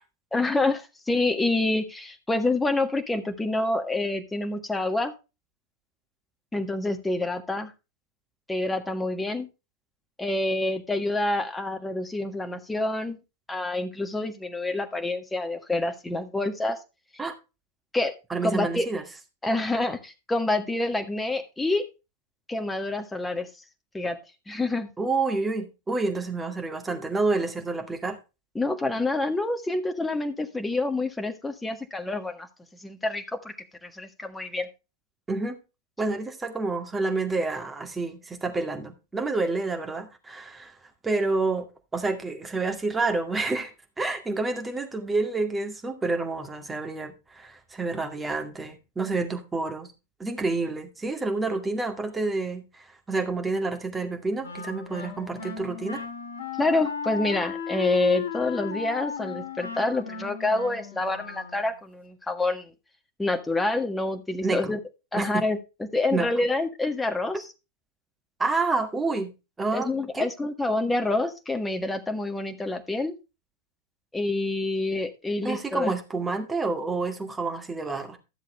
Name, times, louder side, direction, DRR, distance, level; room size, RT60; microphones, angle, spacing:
voice 1, 0.3-5.1 6.5-7.7 8.5-9.5 10.2-13.2 13.5-16.8 17.9-18.1 18.4-18.9 19.4-21.8 22.5-23.5 23.9-24.2 24.5-24.9 28.5-32.5 32.8-33.5 33.8-34.7 56.6-62.7 63.2-64.8 65.1-65.6 65.9-67.4 69.7-73.1 74.1-75.9, left 2 dB, 10° left, 1.5 m, -27 dB
voice 2, 18.3-19.0 25.0-28.2 35.3-35.6 36.0-40.7 41.0-41.7 41.9-43.7 44.0-49.9 50.2-56.0 64.4-64.7 65.1-65.4 66.1-66.3 68.4-69.3 69.6-69.9 70.1-70.3 75.4-78.2, right 3 dB, 10° right, 2.1 m, -28 dB
Wind instrument woodwind instrument, 54.4-61.8, left 6 dB, 65° left, 1.9 m, -35 dB
13.0 x 7.3 x 3.2 m
figure-of-eight pair, 90°, 0 cm